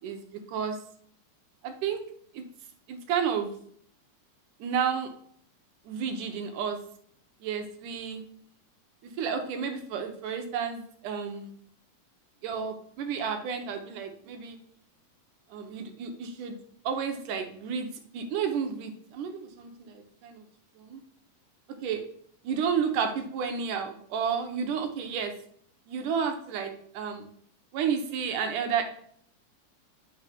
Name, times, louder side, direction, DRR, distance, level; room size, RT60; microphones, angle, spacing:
voice 1, 0.0-0.8 1.6-2.0 2.3-2.4 2.9-3.5 4.6-5.1 5.9-6.8 7.4-8.2 9.2-11.5 12.4-14.6 15.5-16.6 16.8-17.9 18.1-20.4 20.8-21.0 21.8-22.0 22.4-25.3 25.9-27.3 27.7-28.8, right 7 dB, 80° right, 5 dB, 2.5 m, -31 dB
10.5 x 6.6 x 3.5 m, 0.64 s
omnidirectional pair, 3.6 m